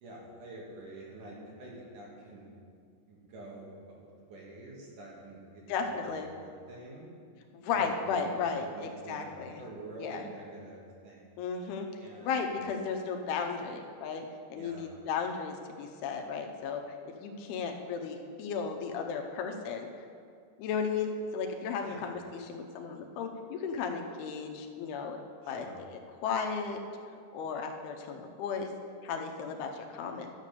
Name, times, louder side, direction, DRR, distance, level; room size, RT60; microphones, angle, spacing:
voice 1, 0.0-2.5 3.1-7.1 7.7-11.4 12.0-12.5 14.5-15.0 21.8-22.1 25.4-25.8, right 2 dB, 55° right, -4 dB, 2.9 m, -47 dB
voice 2, 5.7-6.3 7.5-9.6 10.0-10.2 11.4-11.9 12.2-14.3 14.5-19.9 20.6-25.2 25.5-25.7 26.2-26.8 27.3-28.7 29.0-30.3, left 5 dB, 80° left, 3 dB, 2.7 m, -34 dB
12.0 x 6.9 x 6.7 m, 2.2 s
omnidirectional pair, 4.7 m